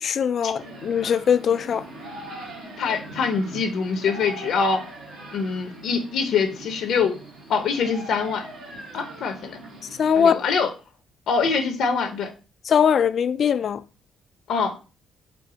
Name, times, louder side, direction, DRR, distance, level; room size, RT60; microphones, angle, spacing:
voice 1, 0.0-1.9 10.0-10.3 12.7-13.8, left 7 dB, 55° left, 0.3 m, -21 dB
sound 1, 0.6-10.3, right 2 dB, 85° right, 1.4 m, -41 dB
voice 2, 2.8-4.8 5.3-7.2 7.5-8.4 8.9-9.6 10.2-10.7 11.3-12.3 14.5-14.7, left 5 dB, 75° left, 0.8 m, -24 dB
4.5 x 2.0 x 3.9 m
cardioid pair, 90°, 0 cm